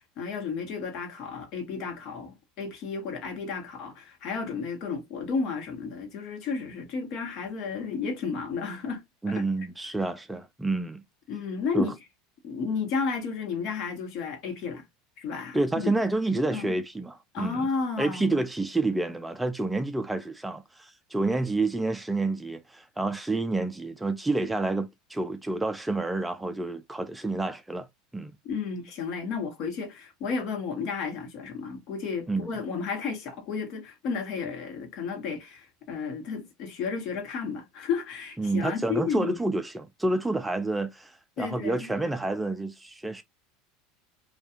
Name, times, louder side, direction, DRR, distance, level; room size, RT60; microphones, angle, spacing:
voice 1, 0.0-9.4 11.3-11.9 12.4-14.8 15.2-15.9 16.5-16.8 17.3-18.4 28.4-39.4 41.4-41.9, left 5 dB, 60° left, 1.0 m, -32 dB
voice 2, 9.2-11.0 11.7-11.9 15.5-17.7 18.0-27.9 28.1-28.3 32.3-32.5 38.4-43.2, right 2 dB, 10° right, 0.4 m, -29 dB
2.4 x 2.3 x 2.8 m
hypercardioid pair, 100°, 0 cm